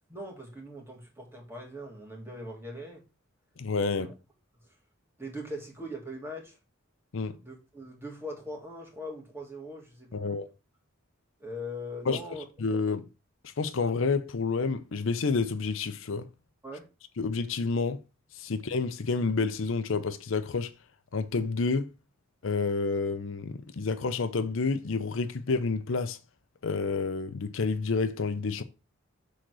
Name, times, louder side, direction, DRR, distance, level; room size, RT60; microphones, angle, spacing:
voice 1, 0.1-3.0 4.0-4.1 5.2-6.6 7.4-10.4 11.4-12.4 16.6-16.9, equal, 10° right, 2.0 m, -41 dB
voice 2, 3.6-4.1 7.1-7.4 10.1-10.5 12.1-12.2 12.6-13.1 13.4-16.3 17.2-18.0 18.3-20.7 21.1-21.9 22.4-26.2 26.6-28.6, left 4 dB, 65° left, 0.6 m, -29 dB
6.3 x 3.8 x 6.1 m
head